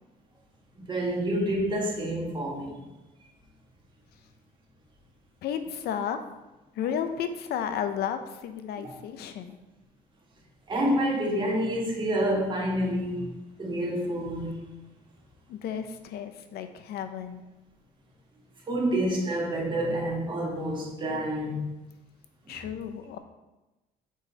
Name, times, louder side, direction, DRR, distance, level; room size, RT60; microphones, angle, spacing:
voice 1, 0.8-2.8 8.8-8.9 10.7-13.3 13.6-14.5 18.7-21.7 22.5-22.6, right 1 dB, 30° right, -2 dB, 1.5 m, -28 dB
voice 2, 5.4-6.2 6.8-9.6 15.5-17.4 22.5-23.2, left 8 dB, 70° left, 9 dB, 0.6 m, -33 dB
6.3 x 3.9 x 4.1 m, 1.0 s
cardioid pair, 110°, 17 cm